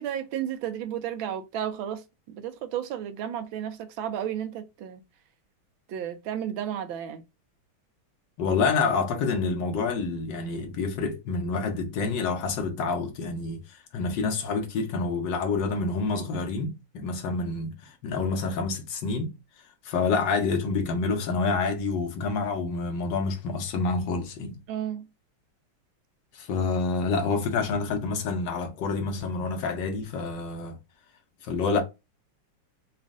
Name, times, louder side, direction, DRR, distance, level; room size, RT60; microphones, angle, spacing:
voice 1, 0.0-2.0 2.3-5.0 5.9-7.2 24.7-25.1, right 10 dB, 75° right, 1.4 m, -32 dB
voice 2, 8.4-19.3 19.8-24.6 26.3-30.8 31.4-31.8, left 4 dB, 65° left, 1.6 m, -28 dB
4.2 x 2.5 x 3.5 m
omnidirectional pair, 2.2 m